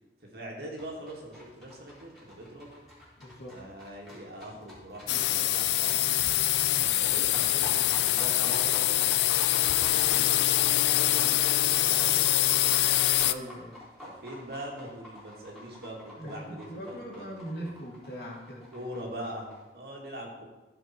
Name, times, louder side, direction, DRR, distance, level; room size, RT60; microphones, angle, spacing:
voice 1, 0.2-2.7 3.5-6.1 7.0-9.2 9.5-11.4 11.8-12.3 14.0-17.7 18.7-20.4, equal, 65° right, -1 dB, 2.2 m, -42 dB
sound 1, 0.8-19.6, left 1 dB, ahead, 3.7 m, -46 dB
voice 2, 3.2-3.5 13.2-13.7 16.2-18.6, equal, 60° left, -3 dB, 2.5 m, -40 dB
sound 2, 5.1-13.3, left 14 dB, 75° left, 0.4 m, -24 dB
14.5 x 5.2 x 4.5 m, 1.1 s
head